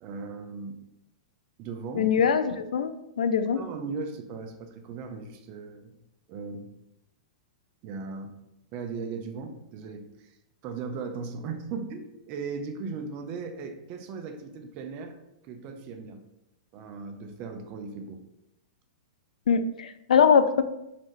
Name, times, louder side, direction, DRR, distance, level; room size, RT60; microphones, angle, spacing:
voice 1, 0.0-0.8 1.6-2.1 3.5-5.9 6.3-6.7 7.8-8.4 8.7-10.4 10.6-15.2 15.4-16.2 16.7-18.2, right 4 dB, 35° right, 6 dB, 0.5 m, -37 dB
voice 2, 2.0-3.6 19.5-20.6, left 6 dB, 90° left, 11 dB, 0.3 m, -22 dB
4.0 x 2.6 x 3.1 m, 0.87 s
hypercardioid pair, 145°, 4 cm